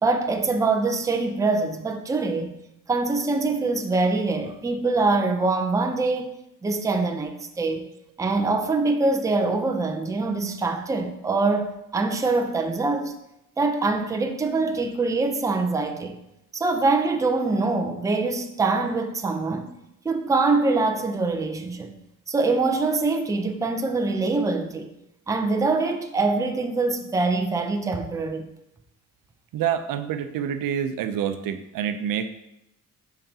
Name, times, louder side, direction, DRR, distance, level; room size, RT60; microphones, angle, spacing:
voice 1, 0.0-2.5 2.9-6.3 6.6-7.9 8.2-13.1 13.6-16.2 16.5-19.7 20.0-21.9 22.3-24.9 25.3-28.5, right 3 dB, 10° right, 0.4 m, -24 dB
voice 2, 29.5-32.3, right 9 dB, 80° right, 0.6 m, -27 dB
7.3 x 5.8 x 2.8 m
cardioid pair, 140°, 33 cm